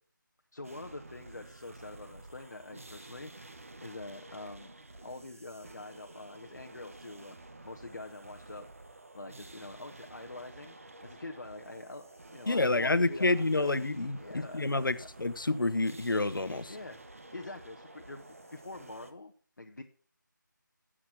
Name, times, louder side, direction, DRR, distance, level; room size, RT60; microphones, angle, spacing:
voice 1, 0.5-4.7 5.0-7.3 7.6-8.6 9.1-10.8 11.0-12.1 12.3-13.7 14.2-15.1 16.7-19.8, left 2 dB, 55° left, 1.0 m, -45 dB
sound 1, 0.6-19.1, right 2 dB, 40° right, 1.1 m, -51 dB
voice 2, 12.5-16.7, left 2 dB, 80° left, 0.9 m, -28 dB
11.0 x 7.5 x 5.9 m
figure-of-eight pair, 180°, 11 cm